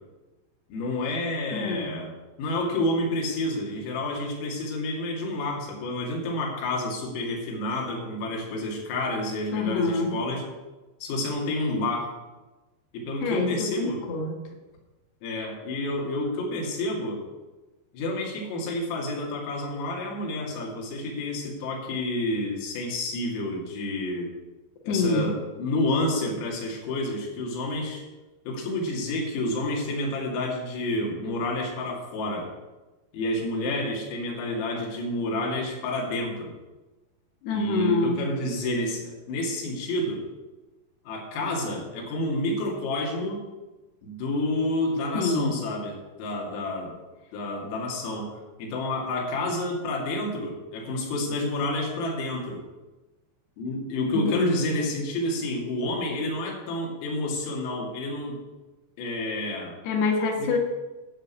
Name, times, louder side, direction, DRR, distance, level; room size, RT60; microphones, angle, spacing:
voice 1, 0.7-2.1 2.4-10.4 11.0-12.1 12.9-14.0 15.2-17.2 17.9-24.3 24.8-28.0 28.5-32.5 33.1-36.5 37.5-40.3 41.1-43.5 44.0-47.0 47.3-48.3 48.6-52.6 53.6-58.4 59.0-59.8 60.4-60.5, left 1 dB, 85° left, -1 dB, 5.1 m, -29 dB
voice 2, 1.5-1.9 9.5-10.1 13.2-14.4 24.9-25.4 37.4-38.2 45.1-45.6 54.1-54.8 59.8-60.6, left 4 dB, 65° left, 3 dB, 3.0 m, -26 dB
12.5 x 6.3 x 8.4 m, 1.1 s
omnidirectional pair, 5.9 m